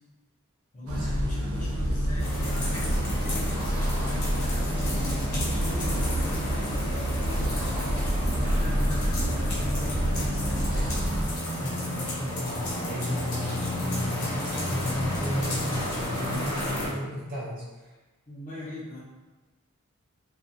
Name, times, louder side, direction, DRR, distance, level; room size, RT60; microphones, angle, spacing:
voice 1, 0.7-11.0 18.3-19.0, left 1 dB, 35° left, -6 dB, 0.6 m, -40 dB
sound 1, 0.9-11.3, equal, 75° right, 0.5 m, -28 dB
sound 2, 2.2-16.9, left 1 dB, 80° left, 0.9 m, -32 dB
voice 2, 11.6-17.9, left 1 dB, 40° right, -7 dB, 0.9 m, -33 dB
2.4 x 2.3 x 2.6 m, 1.2 s
head